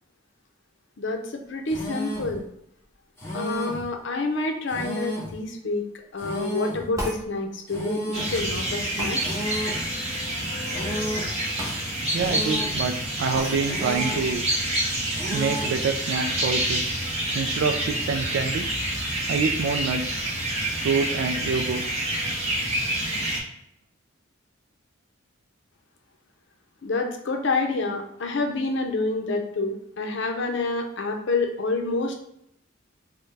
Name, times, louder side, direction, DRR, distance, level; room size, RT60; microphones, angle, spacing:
voice 1, 1.0-2.5 3.3-5.8 6.1-9.2 26.8-32.1, left 3 dB, 60° left, 3 dB, 0.6 m, -28 dB
sound 1, 1.7-2.4 3.2-3.9 4.7-5.4 6.2-6.9 7.7-8.4 9.2-9.9 10.7-11.4 12.1-12.8 13.6-14.3 15.1-15.8, equal, 10° left, 1.0 m, -32 dB
sound 2, 7.0-7.3 9.0-9.2 11.6-11.8 12.2-12.3 13.3-13.6, equal, 15° right, 0.8 m, -32 dB
sound 3, 8.1-23.4, right 1 dB, 30° right, 1.1 m, -28 dB
voice 2, 12.1-14.4 15.3-17.0 17.3-18.6 19.3-20.2 20.8-22.1, right 5 dB, 60° right, 5 dB, 0.3 m, -27 dB
4.3 x 2.2 x 3.3 m, 0.76 s
head